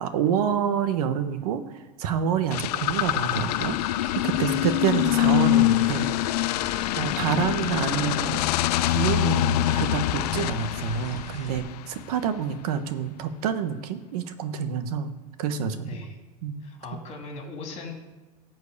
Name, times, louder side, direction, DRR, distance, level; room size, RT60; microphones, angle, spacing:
voice 1, 0.0-6.4 6.9-15.1 15.4-16.0 16.4-16.6 16.9-17.0, right 7 dB, 65° right, 9 dB, 1.1 m, -28 dB
sound 1, 2.5-12.0, left 15 dB, 75° left, 0.5 m, -25 dB
sound 2, 2.8-11.6, right 5 dB, 35° right, 1.5 m, -43 dB
voice 2, 15.8-16.2 16.6-18.0, left 3 dB, 30° left, 2 dB, 3.0 m, -39 dB
13.0 x 4.7 x 8.3 m, 1.2 s
supercardioid pair, 130°, 21 cm